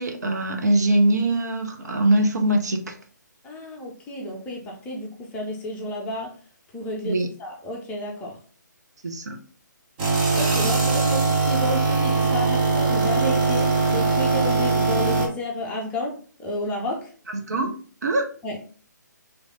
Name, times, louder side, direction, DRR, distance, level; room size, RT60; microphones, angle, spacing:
voice 1, 0.0-2.9 7.0-7.3 9.0-9.4 17.3-17.7 18.0-18.3, right 1 dB, 60° right, 4 dB, 0.8 m, -22 dB
voice 2, 3.4-6.3 6.7-8.4 10.3-17.1 18.4-18.6, left 1 dB, 10° left, -1 dB, 0.7 m, -31 dB
sound 1, 10.0-15.3, right 3 dB, 25° right, 0.9 m, -21 dB
3.2 x 3.1 x 3.8 m, 0.42 s
figure-of-eight pair, 140°, 10 cm